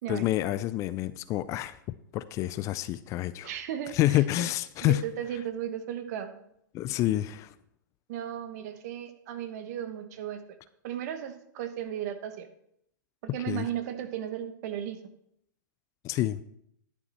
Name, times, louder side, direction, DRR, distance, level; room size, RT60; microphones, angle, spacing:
voice 1, 0.1-1.8 2.1-3.5 3.9-5.0 6.7-7.5 13.5-13.7 16.0-16.4, left 14 dB, 30° left, 15 dB, 0.3 m, -28 dB
voice 2, 3.4-4.5 4.8-6.3 8.1-10.4 10.8-12.5 13.2-15.0, right 10 dB, 50° right, 9 dB, 1.2 m, -35 dB
11.0 x 7.1 x 4.3 m, 0.74 s
hypercardioid pair, 125°, 11 cm